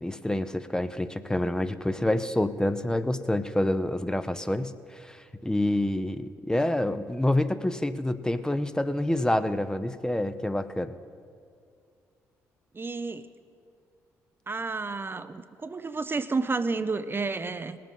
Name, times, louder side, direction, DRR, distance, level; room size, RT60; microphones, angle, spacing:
voice 1, 0.0-10.9, left 1 dB, 10° left, 11 dB, 0.7 m, -27 dB
voice 2, 12.7-13.3 14.5-17.8, right 4 dB, 30° right, 11 dB, 0.6 m, -31 dB
19.5 x 7.6 x 5.5 m, 2.3 s
hypercardioid pair, 45°, 8 cm